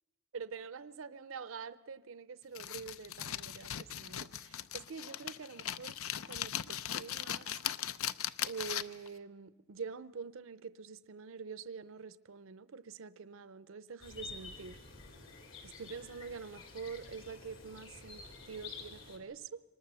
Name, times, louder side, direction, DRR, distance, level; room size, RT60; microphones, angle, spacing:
voice 1, 0.3-6.0 6.3-7.6 8.4-14.8 15.6-19.6, right 5 dB, 70° right, 16 dB, 0.6 m, -46 dB
sound 1, 2.6-9.1, left 10 dB, 80° left, 0.6 m, -39 dB
sound 2, 14.0-19.2, left 4 dB, 65° left, 3.3 m, -50 dB
24.0 x 20.0 x 6.9 m, 1.2 s
head